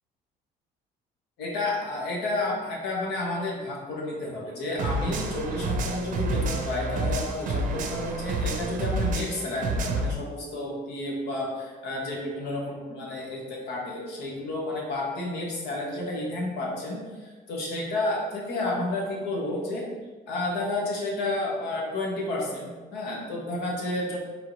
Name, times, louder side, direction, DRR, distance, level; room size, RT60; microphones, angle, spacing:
voice 1, 1.4-19.8 20.3-24.2, left 2 dB, 80° left, -2 dB, 1.2 m, -31 dB
sound 1, 4.8-10.1, right 2 dB, 50° right, 0.5 m, -29 dB
4.6 x 3.7 x 2.7 m, 1.3 s
cardioid pair, 110°, 17 cm